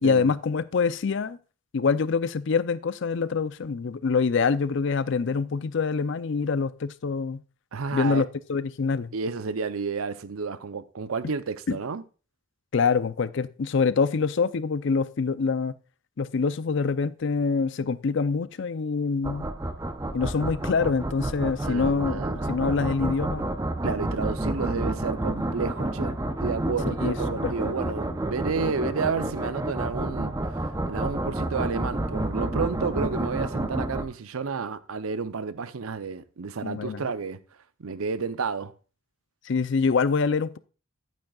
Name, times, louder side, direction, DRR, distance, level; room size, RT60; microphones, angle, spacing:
voice 1, 0.0-1.4 1.7-7.4 7.9-9.1 11.7-11.8 12.7-15.8 16.2-19.5 20.1-23.5 27.0-27.7 36.6-37.0 39.5-40.6, left 5 dB, 60° left, 0.5 m, -25 dB
voice 2, 7.7-8.2 9.1-12.0 21.6-22.7 23.8-37.4 37.8-38.7, right 5 dB, 85° right, 0.6 m, -31 dB
sound 1, 19.2-34.0, right 1 dB, 15° right, 0.6 m, -30 dB
10.5 x 9.0 x 2.3 m
head